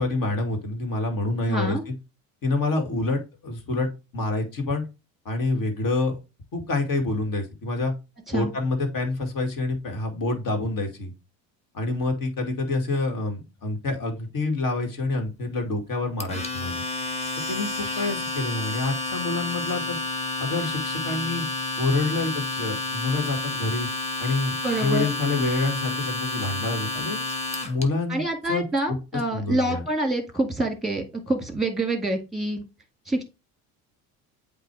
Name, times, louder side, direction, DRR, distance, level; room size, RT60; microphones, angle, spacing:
voice 1, 0.0-1.8 2.4-4.8 5.3-6.2 6.5-7.9 8.3-11.1 11.7-16.8 17.5-20.0 20.4-21.4 21.7-23.9 24.2-27.2 27.7-29.0 29.3-29.8, left 2 dB, 50° left, 4 dB, 2.2 m, -27 dB
voice 2, 1.5-1.8 8.3-8.5 24.6-25.1 28.1-32.6 33.1-33.2, right 1 dB, ahead, 5 dB, 2.0 m, -26 dB
Domestic sounds home sounds, 16.2-27.8, left 2 dB, 15° left, 1.3 m, -30 dB
8.1 x 2.8 x 4.7 m, 0.29 s
supercardioid pair, 85°, 41 cm